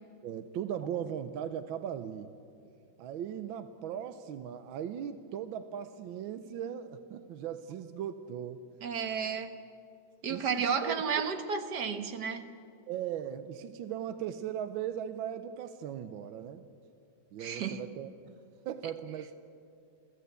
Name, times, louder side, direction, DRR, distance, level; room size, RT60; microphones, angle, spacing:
voice 1, 0.2-2.3 3.0-8.6 10.3-11.0 12.9-16.7 17.3-18.4 18.6-19.4, right 9 dB, 80° right, 10 dB, 1.5 m, -38 dB
voice 2, 8.8-9.5 10.2-12.5 17.4-17.8, right 6 dB, 60° right, 8 dB, 1.7 m, -32 dB
29.5 x 14.0 x 8.1 m, 2.5 s
omnidirectional pair, 2.2 m